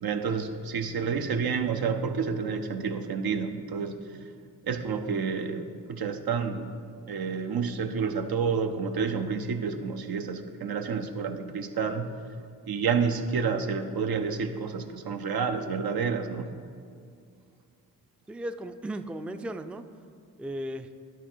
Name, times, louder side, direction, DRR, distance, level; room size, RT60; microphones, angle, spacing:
voice 1, 0.0-4.3 4.6-6.7 7.1-12.1 12.6-16.6, right 5 dB, 80° right, 7 dB, 0.6 m, -29 dB
voice 2, 18.3-19.9 20.4-20.9, right 1 dB, 5° right, 9 dB, 0.3 m, -36 dB
11.5 x 4.0 x 4.5 m, 2.3 s
cardioid pair, 45°, 37 cm